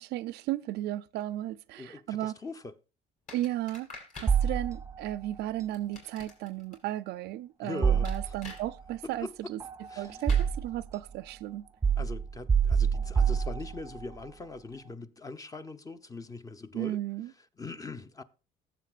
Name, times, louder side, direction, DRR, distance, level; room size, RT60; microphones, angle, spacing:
voice 1, 0.0-2.3 3.3-9.6 10.0-11.7 16.7-17.3, right 14 dB, 75° right, 0.5 m, -35 dB
voice 2, 1.8-2.7 7.6-8.3 9.0-9.4 9.9-10.2 12.0-17.0 17.6-18.2, left 3 dB, 20° left, 0.8 m, -41 dB
sound 1, 3.3-4.4 5.7-6.8 8.0-8.6 10.3-10.5, left 3 dB, 50° left, 5.8 m, -45 dB
sound 2, 4.3-5.2 7.8-8.7 9.6-10.9 11.8-14.1, right 6 dB, 15° right, 0.5 m, -27 dB
18.5 x 7.8 x 2.5 m
cardioid pair, 110°, 17 cm